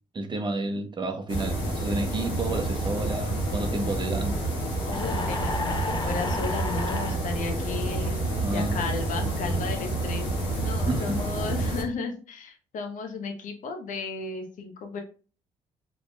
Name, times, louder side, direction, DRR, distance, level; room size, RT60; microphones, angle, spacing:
voice 1, 0.1-4.4 8.4-9.0 10.9-11.2, right 2 dB, 35° right, 0.9 m, -30 dB
sound 1, 1.3-11.8, right 1 dB, 90° left, 1.1 m, -29 dB
voice 2, 4.9-8.2 8.5-10.3 10.6-15.0, left 4 dB, 65° left, 0.8 m, -34 dB
sound 2, 4.9-7.2, left 2 dB, 35° left, 0.8 m, -33 dB
4.3 x 2.8 x 2.2 m
supercardioid pair, 60°, 14 cm